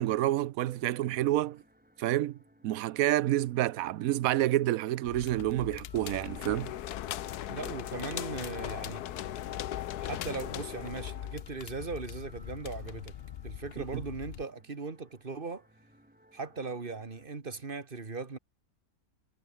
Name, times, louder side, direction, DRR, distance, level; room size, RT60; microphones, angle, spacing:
voice 1, 0.0-1.6 2.0-2.4 2.6-6.7 13.9-14.0, right 14 dB, 70° right, 1.0 m, -28 dB
sound 1, 0.7-17.3, equal, 5° right, 3.7 m, -62 dB
Crackle, 5.0-14.4, left 11 dB, 65° left, 0.6 m, -43 dB
sound 2, 5.9-11.4, left 12 dB, 85° left, 1.3 m, -39 dB
voice 2, 7.5-9.1 10.0-13.1 13.4-15.7 16.3-18.4, right 4 dB, 35° right, 1.9 m, -39 dB
omnidirectional pair, 1.6 m